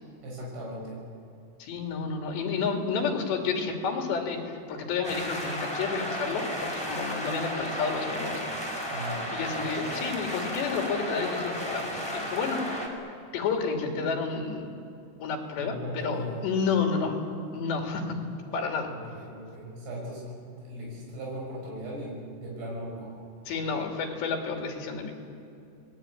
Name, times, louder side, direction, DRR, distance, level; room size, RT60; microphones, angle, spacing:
voice 1, 0.2-1.0 8.9-9.3 15.6-16.4 18.9-23.1, equal, 65° right, -3 dB, 8.6 m, -38 dB
voice 2, 1.6-8.3 8.7-8.8 9.3-12.9 13.3-14.7 15.2-17.2 17.5-18.2 18.5-18.9 23.5-25.1, left 5 dB, 75° left, 3 dB, 5.1 m, -30 dB
sound 1, 5.0-12.9, equal, 5° right, 3.4 m, -33 dB
29.5 x 21.0 x 9.4 m, 2.6 s
omnidirectional pair, 5.1 m